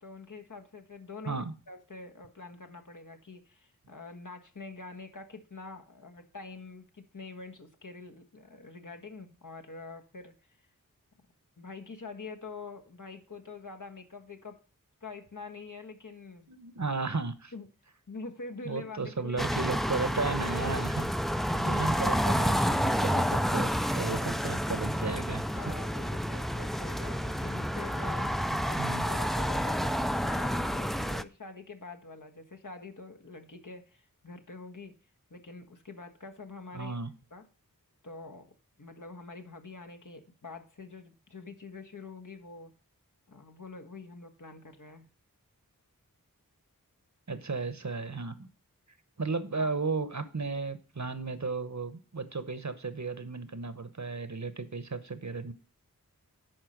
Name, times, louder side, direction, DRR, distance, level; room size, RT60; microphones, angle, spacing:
voice 1, 0.0-10.3 11.6-14.6 15.0-16.5 17.5-17.7 18.1-19.7 21.3-21.7 25.5-35.0 35.3-37.0 37.3-37.5 38.0-42.7 43.3-45.1 49.6-49.7, left 3 dB, 60° left, 4 dB, 1.4 m, -45 dB
voice 2, 16.5-17.5 18.6-21.1 21.6-25.7 28.7-29.1 36.7-37.1 47.3-48.5 49.2-55.5, right 4 dB, 55° right, 13 dB, 1.0 m, -34 dB
sound 1, 19.4-31.2, equal, ahead, 0.4 m, -29 dB
10.5 x 4.4 x 6.4 m, 0.35 s
wide cardioid pair, 45°, 35 cm